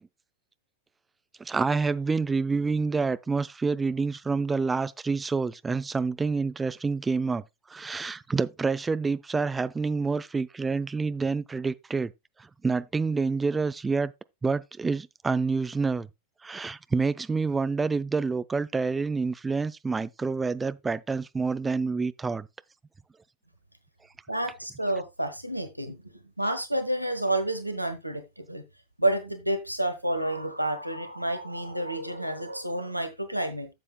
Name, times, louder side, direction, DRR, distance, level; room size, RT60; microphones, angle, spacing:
voice 1, 1.4-7.4 7.7-12.1 12.4-14.1 14.4-16.1 16.4-22.5, right 4 dB, 15° right, 0.4 m, -28 dB
voice 2, 24.3-26.0 26.4-28.6 29.0-33.7, right 1 dB, 90° right, 1.0 m, -29 dB
12.0 x 7.6 x 2.2 m
figure-of-eight pair, 90°, 0 cm